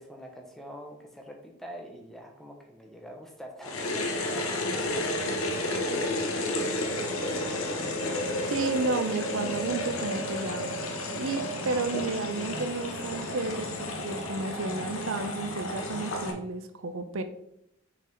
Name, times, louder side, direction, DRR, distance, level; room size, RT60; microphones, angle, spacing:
voice 1, 0.0-7.7, equal, ahead, 1 dB, 0.8 m, -45 dB
sound 1, 3.6-16.3, left 1 dB, 85° left, 1.0 m, -31 dB
voice 2, 8.5-10.7 11.2-17.2, right 3 dB, 70° right, 9 dB, 0.5 m, -32 dB
6.1 x 3.9 x 4.4 m, 0.77 s
head